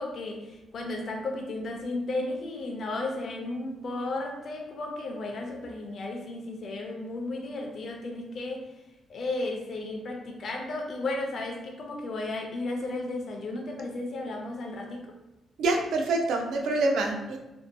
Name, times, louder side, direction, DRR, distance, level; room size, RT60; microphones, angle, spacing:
voice 1, 0.0-8.7 9.1-15.1, left 2 dB, 45° left, 1 dB, 0.4 m, -34 dB
voice 2, 15.6-17.4, right 2 dB, 85° right, 2 dB, 0.4 m, -26 dB
2.6 x 2.2 x 2.5 m, 0.99 s
cardioid pair, 165°, 0 cm